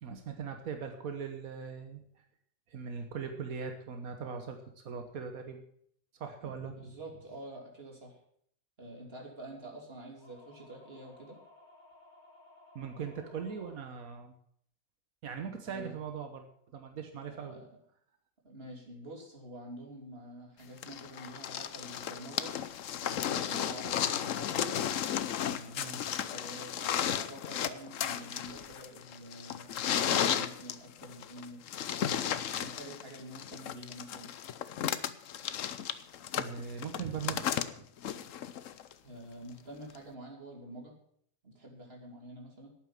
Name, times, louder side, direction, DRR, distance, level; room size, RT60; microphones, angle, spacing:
voice 1, 0.0-2.2 2.7-5.6 6.2-6.8 12.7-14.3 15.2-16.5 16.7-17.6 25.8-26.0 36.3-37.6, right 6 dB, 90° right, 6 dB, 1.6 m, -40 dB
voice 2, 6.8-8.2 8.8-11.4 15.7-16.0 17.3-17.7 18.4-22.6 22.9-24.7 25.4-31.6 32.5-34.3 39.0-40.9 41.4-42.7, right 1 dB, 45° right, -1 dB, 3.4 m, -47 dB
sound 1, 10.2-13.8, left 2 dB, 35° left, 3.5 m, -58 dB
sound 2, 20.8-38.9 39.9-40.0, left 9 dB, 70° left, 1.1 m, -34 dB
11.5 x 9.0 x 7.4 m, 0.65 s
omnidirectional pair, 1.4 m